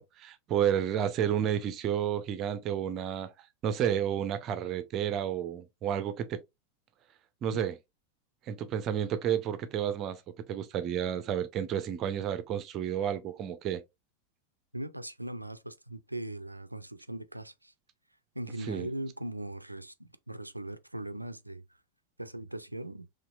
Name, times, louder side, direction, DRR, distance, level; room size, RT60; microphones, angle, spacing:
voice 1, 0.2-3.3 3.6-6.4 7.4-7.7 8.5-10.2 10.5-13.8 18.7-18.9, right 9 dB, 35° right, 0.6 m, -31 dB
voice 2, 14.7-17.7 18.3-21.6 22.2-23.1, right 1 dB, 85° right, 0.4 m, -40 dB
4.3 x 3.1 x 2.4 m
figure-of-eight pair, 90°, 0 cm